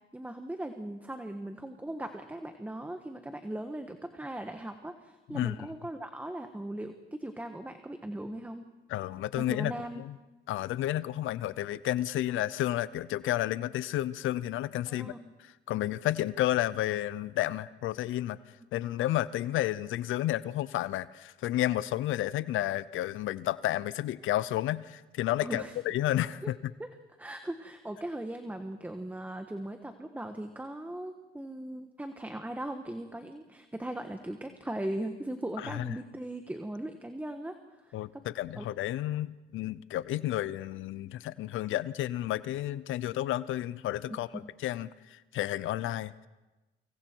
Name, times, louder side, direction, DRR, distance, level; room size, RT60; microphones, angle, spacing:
voice 1, 0.1-8.6 9.4-10.0 14.9-15.3 25.4-25.7 26.4-26.5 26.8-26.9 27.2-38.0 38.5-38.6 44.1-44.2, right 1 dB, 10° right, 7 dB, 1.4 m, -39 dB
voice 2, 8.9-10.2 10.5-15.1 15.4-18.4 18.7-26.6 35.6-35.9 37.9-46.1, left 14 dB, 85° left, 17 dB, 0.6 m, -31 dB
28.5 x 25.5 x 4.6 m, 1.1 s
cardioid pair, 90°, 20 cm